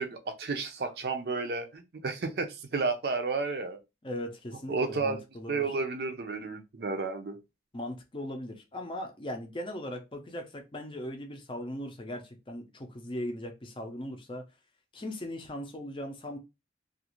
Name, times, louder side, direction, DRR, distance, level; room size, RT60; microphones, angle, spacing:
voice 1, 0.0-3.8 4.7-5.2 5.5-7.4, right 4 dB, 60° right, 0.5 m, -32 dB
voice 2, 4.0-5.7 7.7-14.5 14.9-16.4, left 1 dB, 30° left, 0.5 m, -39 dB
2.5 x 2.4 x 2.9 m
head